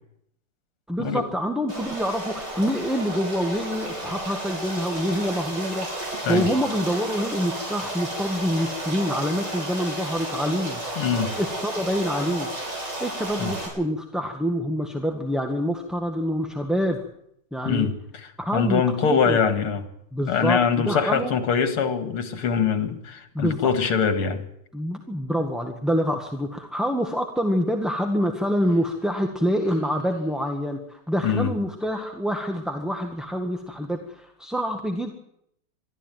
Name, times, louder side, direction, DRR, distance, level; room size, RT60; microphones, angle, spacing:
voice 1, 0.9-10.8 11.4-12.5 13.0-17.0 17.5-17.9 18.4-19.4 20.1-21.3 23.3-23.7 24.7-35.1, equal, ahead, 2 dB, 1.4 m, -26 dB
Stream, 1.7-13.7, right 1 dB, 50° right, 7.5 m, -33 dB
voice 2, 11.0-11.3 13.4-13.5 17.6-19.8 20.2-24.5 31.2-31.5, left 6 dB, 85° left, 8 dB, 2.8 m, -23 dB
23.0 x 13.5 x 9.2 m, 0.74 s
omnidirectional pair, 2.4 m